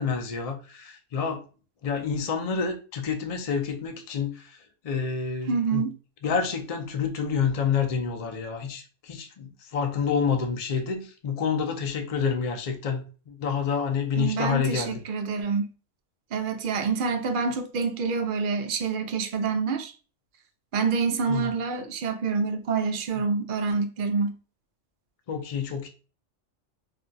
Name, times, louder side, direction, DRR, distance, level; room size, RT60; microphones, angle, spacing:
voice 1, 0.0-1.4 1.8-4.6 4.8-5.8 6.2-15.0 21.3-21.5 23.2-23.3 25.3-25.9, left 6 dB, 55° left, 0.4 m, -28 dB
voice 2, 5.5-5.9 14.2-15.7 16.3-19.9 20.7-24.3, right 5 dB, 60° right, 0.5 m, -27 dB
2.5 x 2.2 x 3.9 m
omnidirectional pair, 1.3 m